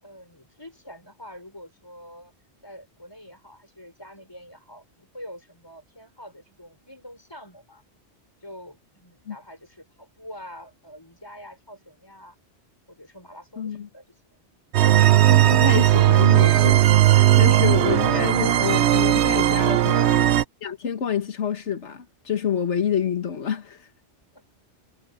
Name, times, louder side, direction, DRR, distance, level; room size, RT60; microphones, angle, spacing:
voice 1, 0.0-2.3 2.6-7.8 8.4-12.4 12.9-14.1 19.9-20.2 24.3-24.5, equal, 20° left, 5.2 m, -45 dB
voice 2, 13.6-13.9 14.9-15.0 15.3-16.8 17.1-20.2 20.6-23.9, left 8 dB, 80° left, 1.6 m, -28 dB
sound 1, 14.7-20.4, right 13 dB, 75° right, 0.9 m, -17 dB
omnidirectional pair, 1.2 m